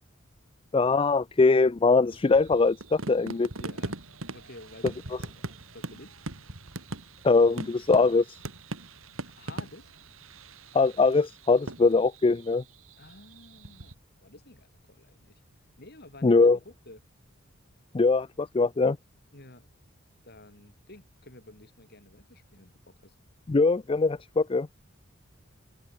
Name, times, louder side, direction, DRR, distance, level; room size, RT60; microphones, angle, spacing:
voice 1, 0.7-3.5 7.2-8.4 10.7-12.6 16.2-16.6 17.9-19.0 23.5-24.7, left 3 dB, 25° left, 0.4 m, -22 dB
sound 1, 2.1-13.9, right 2 dB, 80° right, 2.7 m, -41 dB
voice 2, 3.6-5.3 5.7-6.2 9.2-9.9 13.0-14.0 14.2-15.4 15.8-17.0 19.3-19.7 20.2-23.2, left 2 dB, 50° left, 6.1 m, -51 dB
head